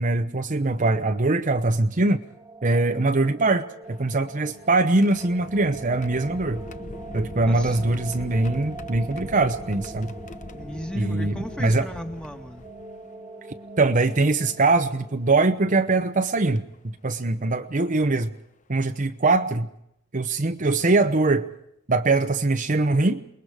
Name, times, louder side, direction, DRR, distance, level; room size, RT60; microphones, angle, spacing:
voice 1, 0.0-2.2 2.6-6.6 7.1-10.1 10.9-11.3 11.6-11.9 13.8-18.3 18.7-19.7 20.1-21.5 21.9-23.2, right 2 dB, 40° right, 7 dB, 0.9 m, -22 dB
sound 1, 2.1-16.9, right 2 dB, 20° right, 1.7 m, -43 dB
sound 2, 3.8-13.1 14.0-14.1 15.6-15.8 16.6-16.8 18.4-18.5 18.9-19.1, left 2 dB, 40° left, 0.8 m, -41 dB
voice 2, 7.4-7.9 10.5-12.6, equal, 5° left, 4 dB, 1.7 m, -36 dB
28.5 x 21.0 x 4.9 m, 0.77 s
head